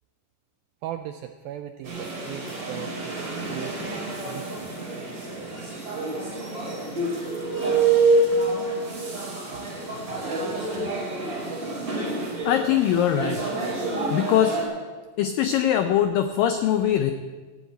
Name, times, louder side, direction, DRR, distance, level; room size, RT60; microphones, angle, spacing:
voice 1, 0.8-4.7 9.5-9.6, right 11 dB, 90° right, 8 dB, 2.1 m, -38 dB
sound 1, 1.8-14.6, right 3 dB, 35° right, 5.4 m, -27 dB
voice 2, 12.5-13.4 14.1-14.6 15.2-17.1, left 10 dB, 85° left, 7 dB, 2.0 m, -22 dB
15.0 x 8.0 x 8.8 m, 1.4 s
omnidirectional pair, 4.8 m